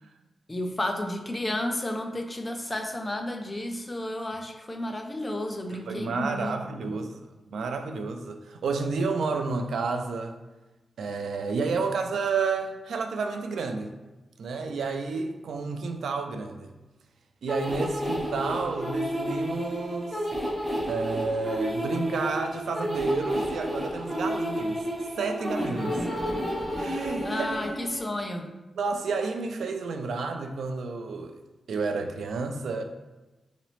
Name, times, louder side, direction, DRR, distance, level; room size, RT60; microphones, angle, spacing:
voice 1, 0.5-6.6 6.9-7.0 27.2-28.5, left 1 dB, 15° left, 3 dB, 0.3 m, -32 dB
voice 2, 5.7-7.2 7.5-10.4 11.0-13.9 14.4-16.7 17.4-20.2 20.9-24.8 25.1-26.4 26.8-27.5 28.8-31.4 31.7-32.8, right 4 dB, 90° right, 5 dB, 0.4 m, -30 dB
sound 1, 17.5-28.0, equal, 5° right, 0.9 m, -31 dB
3.9 x 2.9 x 3.0 m, 1.1 s
wide cardioid pair, 175°, 0 cm